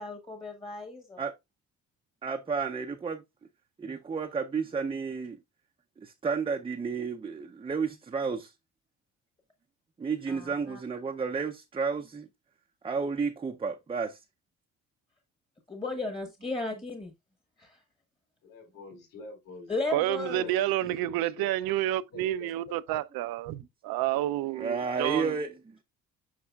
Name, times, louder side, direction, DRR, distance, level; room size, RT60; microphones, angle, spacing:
voice 1, 0.0-1.2 10.3-10.8 15.7-17.1 17.6-17.8 19.7-20.4, left 3 dB, 15° left, 1.1 m, -35 dB
voice 2, 2.2-3.2 3.8-5.4 6.0-8.5 10.0-12.3 12.8-14.2 16.7-16.8 24.5-25.5, right 5 dB, 15° right, 0.5 m, -32 dB
voice 3, 18.4-19.7 20.0-21.5 22.1-23.0, left 3 dB, 70° left, 4.4 m, -46 dB
voice 4, 19.9-25.3, right 14 dB, 85° right, 0.6 m, -29 dB
8.5 x 5.4 x 2.3 m
cardioid pair, 120°, 35 cm